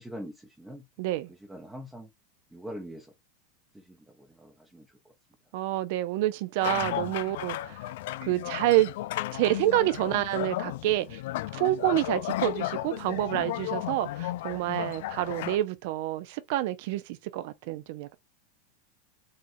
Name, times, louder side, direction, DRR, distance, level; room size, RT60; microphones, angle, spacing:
voice 1, 0.0-0.8 1.5-2.1 2.5-3.1 3.7-4.9, equal, 5° right, 0.7 m, -43 dB
voice 2, 1.0-1.3 5.5-7.8 8.2-8.9 9.3-11.2 11.5-18.1, right 15 dB, 65° right, 0.5 m, -28 dB
sound 1, 6.6-15.6, left 15 dB, 70° left, 0.3 m, -34 dB
4.3 x 2.4 x 2.6 m
supercardioid pair, 125°, 0 cm